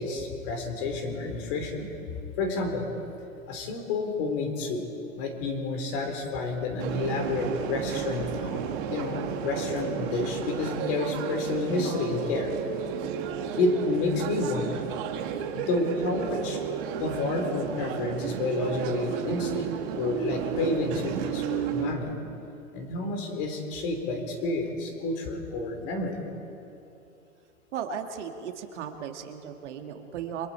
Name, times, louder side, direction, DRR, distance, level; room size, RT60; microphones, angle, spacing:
voice 1, 0.0-1.9 2.4-2.9 3.5-4.8 5.2-12.5 13.6-14.8 15.5-16.6 17.0-22.2 22.7-26.2, left 3 dB, 40° left, 4 dB, 4.2 m, -30 dB
sound 1, 6.8-21.9, right 8 dB, 35° right, 1.9 m, -32 dB
voice 2, 27.7-30.5, right 8 dB, 50° right, 4 dB, 2.0 m, -36 dB
29.5 x 24.5 x 4.5 m, 2.7 s
hypercardioid pair, 145°, 44 cm